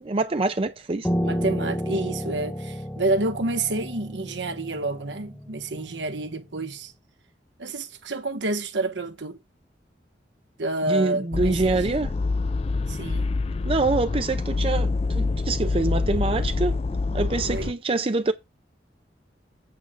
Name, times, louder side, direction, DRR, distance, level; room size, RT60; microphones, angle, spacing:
voice 1, 0.0-1.1 10.9-12.1 13.7-16.8 17.1-18.3, right 3 dB, 30° right, 0.5 m, -25 dB
Piano, 1.0-6.3, equal, 10° left, 0.8 m, -31 dB
voice 2, 1.2-6.9 7.6-9.4 10.6-11.8 12.9-13.3 17.4-17.7, right 2 dB, 85° right, 1.2 m, -29 dB
sound 1, 11.3-17.7, left 3 dB, 35° left, 0.4 m, -26 dB
8.6 x 3.7 x 6.5 m
head